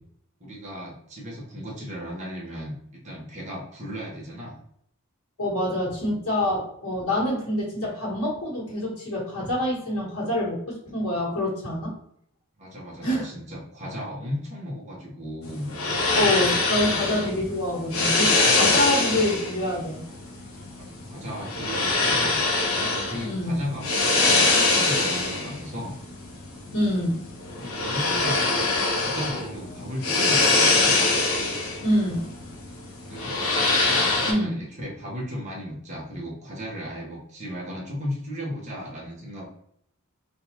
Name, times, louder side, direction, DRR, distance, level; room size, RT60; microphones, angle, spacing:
voice 1, 0.4-4.6 12.6-15.7 20.8-22.4 22.7-25.9 27.6-30.9 33.0-33.5 33.9-39.5, equal, 30° right, -4 dB, 1.1 m, -35 dB
voice 2, 5.4-11.9 13.0-13.3 16.1-20.0 23.2-23.6 26.7-27.3 31.8-32.3 34.2-34.6, left 1 dB, 85° left, -7 dB, 1.4 m, -26 dB
sound 1, 15.4-34.3, left 3 dB, 70° left, 0.9 m, -24 dB
3.8 x 2.4 x 2.9 m, 0.68 s
head